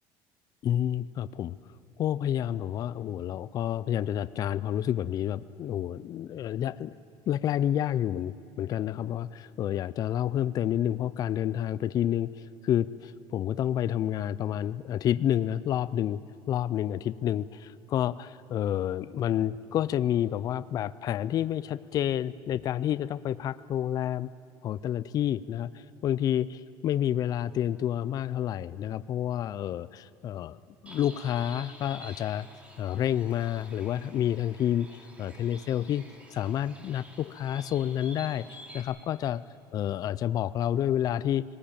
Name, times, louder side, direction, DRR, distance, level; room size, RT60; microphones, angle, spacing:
voice 1, 0.6-1.6 2.0-6.9 7.3-12.3 12.6-16.2 16.5-24.3 24.6-30.6 30.8-32.5 32.8-36.0 36.3-39.4 39.7-41.4, left 11 dB, 40° left, 17 dB, 0.4 m, -29 dB
Bird, 30.9-38.8, right 1 dB, 10° right, 2.8 m, -50 dB
19.0 x 18.5 x 8.7 m, 2.9 s
cardioid pair, 135°, 10 cm